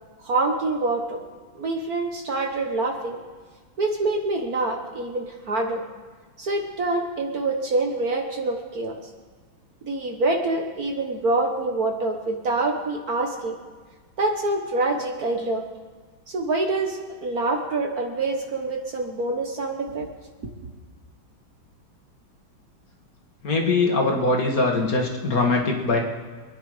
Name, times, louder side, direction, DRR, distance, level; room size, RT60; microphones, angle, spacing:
voice 1, 0.2-1.2 1.5-3.2 3.8-5.8 6.4-9.0 9.8-13.5 14.2-15.7 16.3-20.1, right 2 dB, 50° right, 3 dB, 1.6 m, -26 dB
voice 2, 23.4-26.0, left 3 dB, 45° left, 1 dB, 2.1 m, -22 dB
24.5 x 10.0 x 4.9 m, 1.5 s
omnidirectional pair, 2.3 m